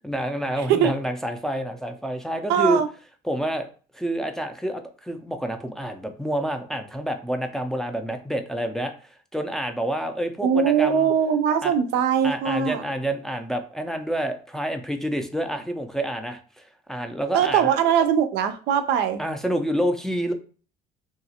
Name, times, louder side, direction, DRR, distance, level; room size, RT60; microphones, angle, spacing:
voice 1, 0.0-2.8 3.2-3.7 3.9-11.1 11.6-11.7 12.2-17.7 19.2-20.3, right 1 dB, 5° left, 4 dB, 0.3 m, -28 dB
voice 2, 2.5-2.9 10.4-12.8 17.3-19.2, right 8 dB, 85° right, 8 dB, 0.4 m, -21 dB
2.8 x 2.4 x 2.7 m, 0.39 s
cardioid pair, 110°, 17 cm